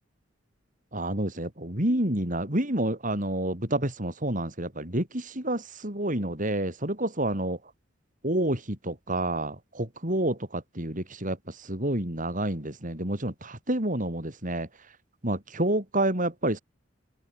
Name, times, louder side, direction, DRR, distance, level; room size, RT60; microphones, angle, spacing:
voice 1, 0.9-7.7 8.2-15.0 15.2-16.6, right 1 dB, 45° right, 6.0 m, -29 dB
head